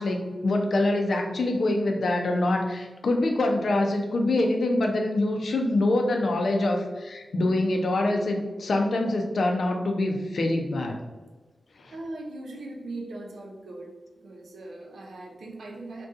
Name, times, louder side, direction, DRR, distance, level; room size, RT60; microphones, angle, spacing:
voice 1, 0.0-11.0 11.8-11.9, left 2 dB, 75° left, 3 dB, 0.5 m, -25 dB
voice 2, 11.9-13.9 14.2-16.1, right 2 dB, 90° right, -1 dB, 0.6 m, -39 dB
2.6 x 2.3 x 3.6 m, 1.2 s
cardioid pair, 60°, 0 cm